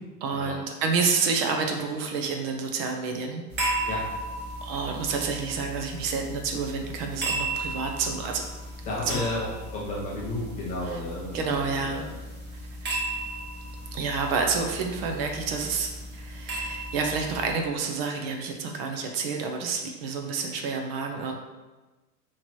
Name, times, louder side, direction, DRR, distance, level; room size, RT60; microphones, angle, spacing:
voice 1, 0.2-3.4 4.6-8.4 9.1-9.2 10.8-11.0 11.3-12.0 12.8-13.2 13.9-21.4, right 5 dB, 40° right, 3 dB, 0.5 m, -29 dB
sound 1, 3.5-17.5, right 1 dB, 20° right, 1.0 m, -35 dB
voice 2, 8.9-9.5 9.7-12.0, left 2 dB, 15° left, -6 dB, 0.4 m, -32 dB
3.0 x 2.9 x 4.2 m, 1.2 s
hypercardioid pair, 115°, 49 cm